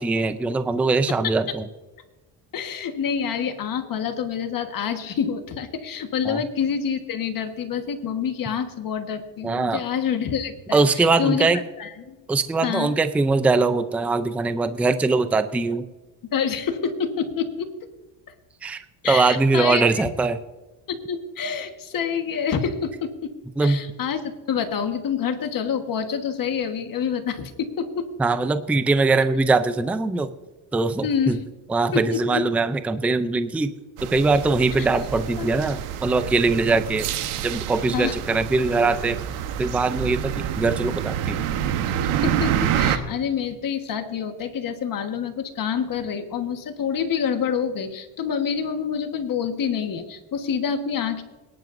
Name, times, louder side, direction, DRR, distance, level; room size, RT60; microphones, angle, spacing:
voice 1, 0.0-1.6 6.3-6.4 9.4-9.8 10.7-11.6 12.3-15.9 18.6-18.8 19.1-20.4 23.6-23.8 28.2-30.3 30.7-31.4 31.7-33.7 34.0-37.1 37.4-39.2 39.6-41.4, right 3 dB, 5° right, 10 dB, 0.4 m, -22 dB
voice 2, 2.5-11.5 11.8-12.1 12.6-12.9 16.3-17.7 19.0-19.9 20.9-23.3 23.6-28.1 31.0-31.4 31.9-32.4 34.8-34.9 35.4-35.5 37.9-38.1 42.2-51.2, left 7 dB, 40° left, 7 dB, 1.5 m, -27 dB
sound 1, 34.0-43.0, right 10 dB, 75° right, 1.3 m, -27 dB
22.0 x 10.5 x 2.6 m, 1.1 s
cardioid pair, 130°, 50 cm